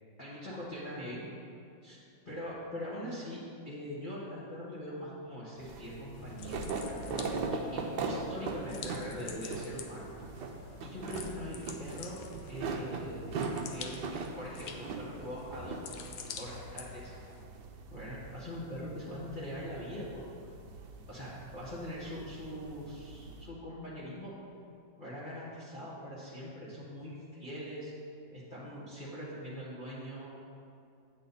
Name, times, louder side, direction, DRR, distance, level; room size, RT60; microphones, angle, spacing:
voice 1, 0.2-1.2 1.8-7.0 7.5-10.1 10.8-12.2 12.5-13.4 13.7-17.1 17.9-20.3 21.1-24.3 25.0-27.9 28.3-30.3, equal, 30° left, -9 dB, 1.4 m, -42 dB
sound 1, 5.6-23.4, right 3 dB, 70° right, 1.3 m, -40 dB
sound 2, 6.1-17.4, left 6 dB, 65° left, 1.1 m, -48 dB
8.4 x 8.1 x 4.1 m, 2.6 s
omnidirectional pair, 2.1 m